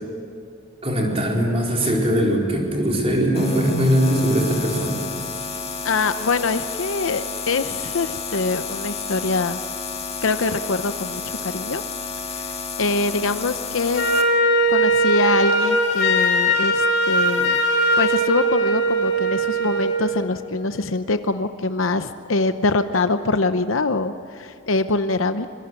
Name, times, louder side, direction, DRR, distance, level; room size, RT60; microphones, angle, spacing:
voice 1, 0.8-5.1, equal, 30° right, -1 dB, 4.4 m, -20 dB
sound 1, 3.3-14.2, left 5 dB, 30° left, 1.9 m, -31 dB
voice 2, 5.8-9.6 10.2-11.8 12.3-14.0 14.7-17.6 18.0-25.5, left 3 dB, 70° left, 9 dB, 0.8 m, -24 dB
Wind instrument woodwind instrument, 13.9-20.0, right 1 dB, 50° left, 3.9 m, -19 dB
25.5 x 23.0 x 9.8 m, 2.4 s
head